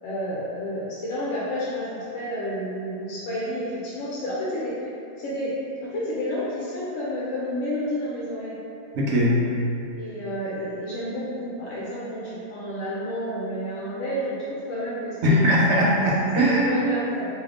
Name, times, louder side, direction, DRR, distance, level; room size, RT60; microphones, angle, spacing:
voice 1, 0.0-4.7 5.2-5.5 5.8-8.6 10.0-15.4 16.5-17.3, equal, 75° left, -8 dB, 0.9 m, -30 dB
voice 2, 8.9-9.5 15.2-16.7, equal, 65° right, -4 dB, 0.8 m, -20 dB
2.7 x 2.5 x 3.3 m, 2.6 s
omnidirectional pair, 1.3 m